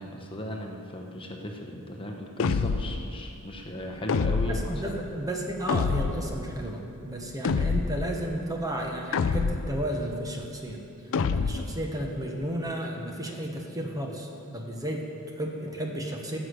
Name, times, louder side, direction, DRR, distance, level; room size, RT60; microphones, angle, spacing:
voice 1, 0.0-5.0, left 1 dB, 25° left, 1 dB, 1.1 m, -36 dB
sound 1, 2.4-3.0 4.1-4.8 5.7-6.3 7.4-8.1 9.1-9.8 11.1-11.8, left 5 dB, 65° left, 0.4 m, -26 dB
voice 2, 4.3-10.8 11.3-16.4, right 1 dB, 15° right, 1 dB, 1.1 m, -33 dB
15.0 x 6.2 x 8.0 m, 2.6 s
head